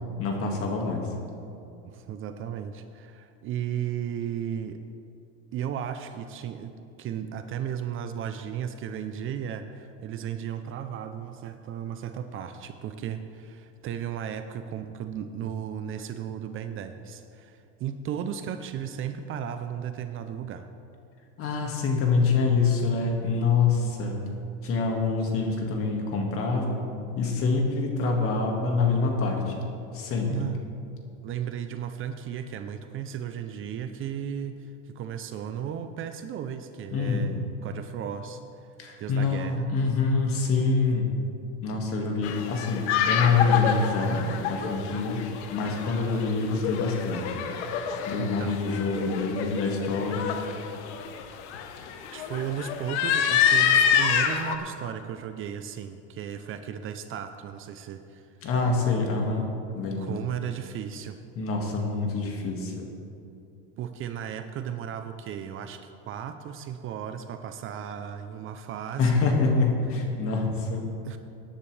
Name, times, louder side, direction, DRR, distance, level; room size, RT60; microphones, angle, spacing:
voice 1, 0.2-1.1 21.4-24.2 24.6-26.8 27.2-29.6 29.9-30.3 36.9-37.3 38.8-41.1 41.6-45.2 45.5-47.4 48.1-50.4 58.4-59.5 59.7-60.2 61.4-62.9 69.0-70.8, left 4 dB, 40° left, 1 dB, 2.0 m, -26 dB
voice 2, 1.8-4.8 5.5-6.7 7.0-20.7 30.3-30.6 31.2-38.7 39.0-39.7 48.2-48.6 52.1-58.3 60.0-61.2 63.8-69.1 71.0-71.2, right 9 dB, 40° right, 8 dB, 0.6 m, -35 dB
sound 1, 42.2-54.6, left 8 dB, 85° left, 1.1 m, -27 dB
18.0 x 9.9 x 3.4 m, 2.6 s
supercardioid pair, 130°, 33 cm